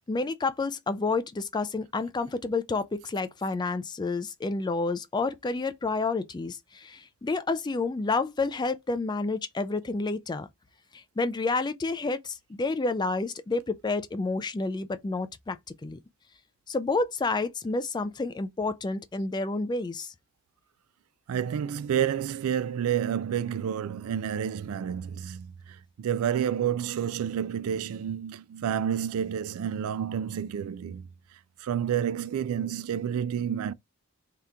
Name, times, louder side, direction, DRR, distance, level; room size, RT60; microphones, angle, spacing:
voice 1, 0.1-10.5 10.9-15.6 15.8-16.0 16.7-20.1, left 3 dB, 20° left, 0.3 m, -29 dB
voice 2, 21.3-31.1 31.6-33.7, right 9 dB, 75° right, 0.3 m, -29 dB
3.4 x 2.8 x 3.6 m
head